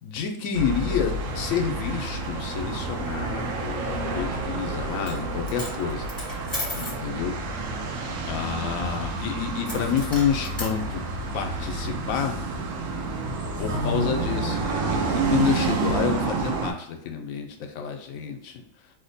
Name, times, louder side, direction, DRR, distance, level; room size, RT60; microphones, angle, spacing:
voice 1, 0.0-6.2 6.7-7.3 8.2-11.0 11.3-12.4 13.6-18.6, left 7 dB, 85° left, 3 dB, 1.0 m, -29 dB
sound 1, 0.5-16.7, right 3 dB, 75° right, 0.9 m, -29 dB
Coin (dropping), 4.9-5.2 5.5-7.0 9.6-10.7, left 1 dB, 15° left, 1.0 m, -35 dB
2.8 x 2.1 x 3.9 m, 0.75 s
omnidirectional pair, 1.4 m